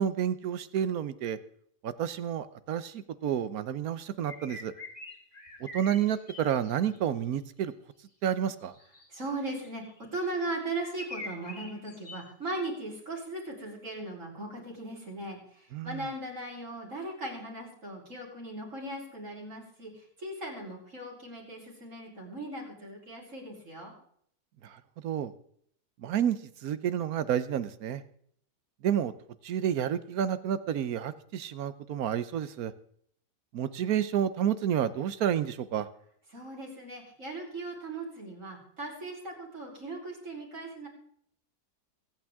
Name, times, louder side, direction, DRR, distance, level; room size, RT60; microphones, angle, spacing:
voice 1, 0.0-1.4 1.8-4.7 5.7-7.7 8.2-8.7 15.7-16.0 24.6-24.8 25.0-25.3 26.0-28.0 28.8-29.1 29.4-32.7 33.5-35.9, right 9 dB, 70° right, 14 dB, 1.2 m, -30 dB
sound 1, 4.2-7.0 8.6-10.3 10.6-12.5, left 2 dB, 25° left, 1.8 m, -45 dB
voice 2, 9.1-9.8 10.1-23.9 36.3-40.9, right 2 dB, 55° right, -2 dB, 4.0 m, -38 dB
24.0 x 8.8 x 3.6 m, 0.64 s
omnidirectional pair, 1.7 m